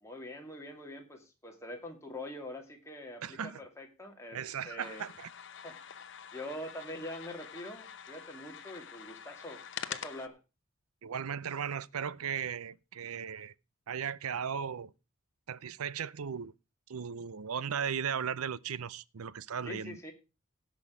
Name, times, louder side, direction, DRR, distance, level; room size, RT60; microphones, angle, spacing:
voice 1, 0.0-4.4 4.6-5.1 5.6-10.4 19.6-20.1, left 1 dB, 15° left, 2.3 m, -44 dB
voice 2, 3.2-3.6 4.3-5.3 11.0-13.5 13.9-14.9 15.5-16.5 16.9-20.0, right 7 dB, 80° right, 0.6 m, -36 dB
sound 1, 4.8-10.3, left 8 dB, 55° left, 0.9 m, -45 dB
17.0 x 6.2 x 4.9 m
head